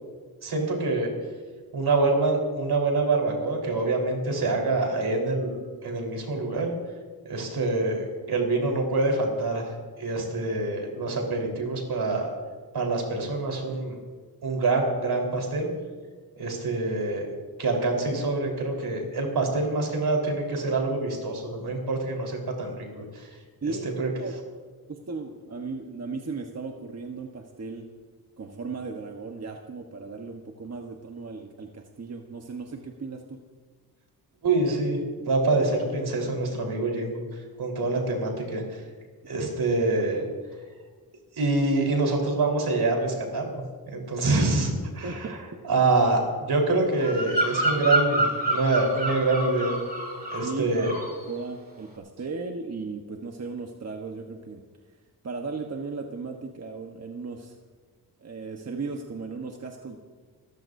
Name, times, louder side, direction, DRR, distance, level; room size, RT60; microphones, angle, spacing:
voice 1, 0.4-1.1 1.7-5.6 5.8-6.7 7.3-12.3 12.7-14.0 14.4-15.7 16.4-17.3 17.6-23.3 23.7-24.1 34.4-38.8 39.2-40.2 41.3-43.6 43.9-45.4 45.6-49.8 50.3-50.9, right 2 dB, 75° right, 1 dB, 4.2 m, -26 dB
voice 2, 23.6-24.3 24.9-27.9 28.4-33.4 45.0-45.4 50.4-54.6 55.2-57.6 58.2-60.0, right 4 dB, 40° right, 2 dB, 1.2 m, -36 dB
Bird vocalization bird call bird song, 47.0-50.5 50.8-51.2, right 1 dB, 25° right, 4.4 m, -27 dB
29.5 x 14.5 x 2.7 m, 1.4 s
wide cardioid pair, 95°, 39 cm